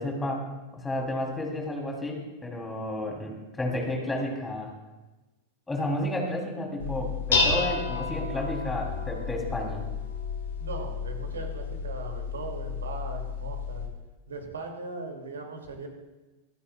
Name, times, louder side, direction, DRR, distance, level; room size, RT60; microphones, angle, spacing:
voice 1, 0.0-4.7 5.7-9.8, left 1 dB, 10° left, -1 dB, 3.6 m, -32 dB
Dishes pots and pans, 6.8-13.9, left 4 dB, 65° left, 2.5 m, -31 dB
voice 2, 10.6-13.8 14.3-15.9, right 3 dB, 70° right, 3 dB, 2.7 m, -39 dB
26.0 x 9.5 x 2.5 m, 1.1 s
figure-of-eight pair, 90°, 0 cm